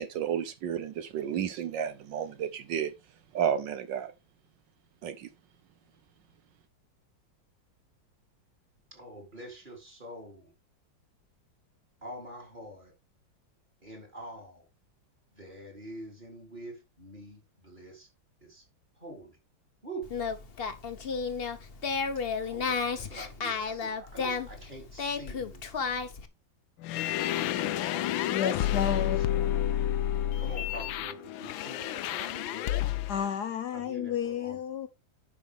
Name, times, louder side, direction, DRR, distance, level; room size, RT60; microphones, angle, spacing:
voice 1, 0.0-2.9 3.3-4.1 5.0-5.3, right 8 dB, 75° right, 1.4 m, -32 dB
voice 2, 8.9-10.5 12.0-12.9 13.8-14.6 15.4-18.1 18.4-18.6 19.0-19.4 19.8-20.1 22.4-25.6 27.2-29.8 30.4-33.1 33.7-34.6, right 1 dB, 25° right, 3.4 m, -45 dB
Singing, 20.0-26.3, left 5 dB, 40° left, 0.9 m, -33 dB
sound 1, 26.8-33.3, left 12 dB, 85° left, 1.4 m, -30 dB
voice 3, 28.3-29.2 32.7-34.9, left 8 dB, 65° left, 1.3 m, -32 dB
10.5 x 6.1 x 3.5 m
omnidirectional pair, 2.1 m